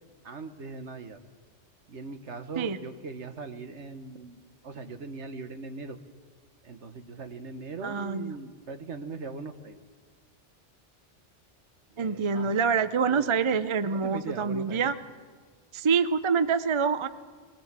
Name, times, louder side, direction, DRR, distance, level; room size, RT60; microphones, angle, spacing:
voice 1, 0.2-1.2 1.9-6.0 6.6-9.8 11.9-13.4 13.9-14.9, right 4 dB, 70° right, 8 dB, 1.6 m, -40 dB
voice 2, 7.8-8.3 12.0-14.9 15.7-17.1, right 6 dB, 35° right, 12 dB, 0.5 m, -26 dB
21.5 x 19.0 x 7.5 m, 1.5 s
omnidirectional pair, 1.2 m